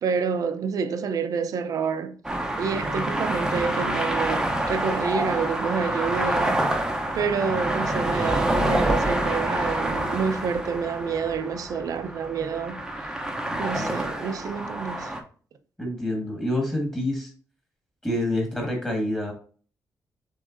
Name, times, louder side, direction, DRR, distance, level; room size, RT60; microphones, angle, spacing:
voice 1, 0.0-2.2 2.6-6.7 7.1-12.8 13.6-15.1, right 6 dB, 65° right, 0.5 m, -28 dB
sound 1, 2.2-15.2, right 1 dB, 10° right, 0.7 m, -27 dB
voice 2, 13.5-13.9 15.8-17.3 18.0-19.3, left 1 dB, 10° left, 1.5 m, -27 dB
6.3 x 3.2 x 2.5 m
wide cardioid pair, 145°, 7 cm